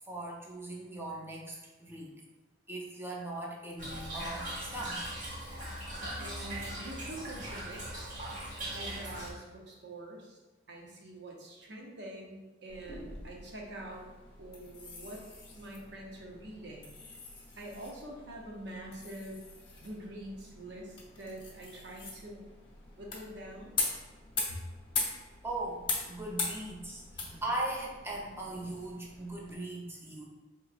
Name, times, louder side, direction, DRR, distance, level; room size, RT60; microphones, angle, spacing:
voice 1, 0.1-2.2 2.7-5.0 25.4-30.3, right 1 dB, 15° right, -2 dB, 0.6 m, -39 dB
Toilet flush / Trickle dribble, 3.8-9.3, right 1 dB, 45° right, 1.1 m, -40 dB
voice 2, 6.2-8.1 8.4-10.4 10.7-14.0 14.4-15.2 15.5-16.9 17.6-19.4 19.8-22.5 23.0-23.8 24.5-24.6, right 1 dB, 65° right, -1 dB, 0.8 m, -45 dB
sound 1, 12.7-29.6, left 3 dB, 25° left, 0.8 m, -41 dB
4.6 x 3.0 x 2.4 m, 1.2 s
head